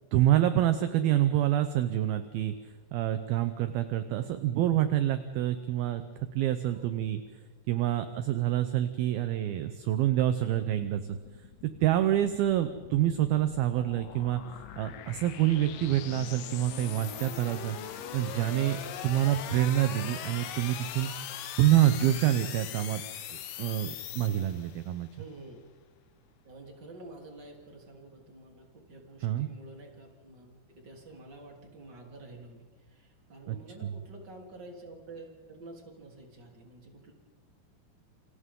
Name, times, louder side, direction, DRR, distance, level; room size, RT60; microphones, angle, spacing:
voice 1, 0.1-2.5 2.9-6.0 6.3-7.2 7.7-11.2 11.6-14.4 14.8-17.8 18.1-21.1 21.6-23.0 23.3-25.1 29.2-29.5 33.5-33.6 33.8-33.9, right 12 dB, 75° right, 10 dB, 2.4 m, -27 dB
sound 1, 10.4-24.9, left 10 dB, 70° left, 2.2 m, -41 dB
voice 2, 25.2-25.6 26.4-37.1, right 2 dB, 25° right, 0 dB, 3.5 m, -49 dB
29.0 x 28.0 x 3.8 m, 1.4 s
omnidirectional pair, 5.0 m